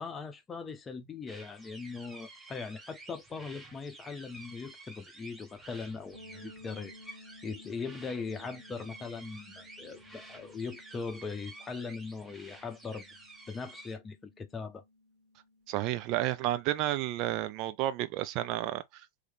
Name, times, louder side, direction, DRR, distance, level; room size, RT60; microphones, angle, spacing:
voice 1, 0.0-13.1 13.5-14.8, left 4 dB, 20° left, 0.8 m, -40 dB
sound 1, 1.3-14.0, right 2 dB, 10° right, 1.1 m, -51 dB
sound 2, 6.1-15.8, left 2 dB, 80° right, 0.9 m, -56 dB
voice 2, 15.7-19.1, right 14 dB, 40° right, 0.4 m, -31 dB
3.2 x 3.2 x 3.4 m
figure-of-eight pair, 90°, 0 cm